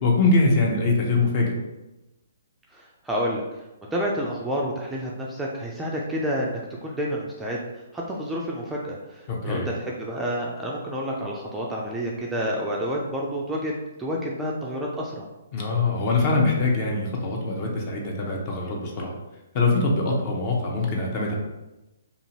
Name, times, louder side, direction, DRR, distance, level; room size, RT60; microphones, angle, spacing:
voice 1, 0.0-1.5 9.3-9.7 15.5-19.1 19.5-21.4, left 3 dB, 35° left, -1 dB, 0.7 m, -23 dB
voice 2, 2.7-3.5 3.9-15.3, equal, 5° right, -4 dB, 0.4 m, -29 dB
2.6 x 2.4 x 2.9 m, 0.99 s
figure-of-eight pair, 130°, 0 cm